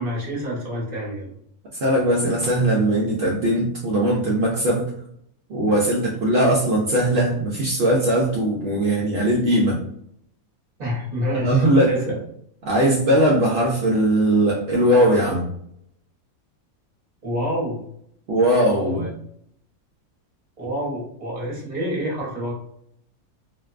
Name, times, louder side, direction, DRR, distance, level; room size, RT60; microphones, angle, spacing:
voice 1, 0.0-1.3 10.8-12.0 17.2-17.8 18.8-19.1 20.6-22.5, equal, 35° right, -5 dB, 0.9 m, -28 dB
voice 2, 1.7-4.9 5.5-9.8 11.4-12.2 12.6-15.5 18.3-19.1, right 1 dB, 70° right, -4 dB, 0.6 m, -20 dB
2.5 x 2.1 x 2.3 m, 0.70 s
omnidirectional pair, 1.5 m